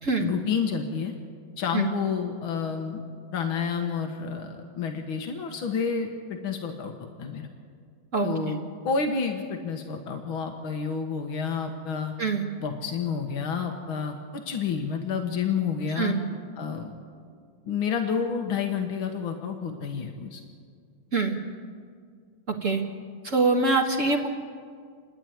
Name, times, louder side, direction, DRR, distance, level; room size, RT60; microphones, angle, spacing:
voice 1, 0.2-1.1 1.6-3.0 3.3-7.5 8.2-12.1 12.6-16.1 16.6-16.9 17.7-20.4, left 6 dB, 85° left, 4 dB, 2.1 m, -29 dB
voice 2, 8.1-8.5 12.2-12.4 16.0-16.2 21.1-21.4 22.6-22.8 23.2-24.3, right 3 dB, 40° right, 0 dB, 1.7 m, -24 dB
29.0 x 10.5 x 9.3 m, 2.1 s
omnidirectional pair, 2.2 m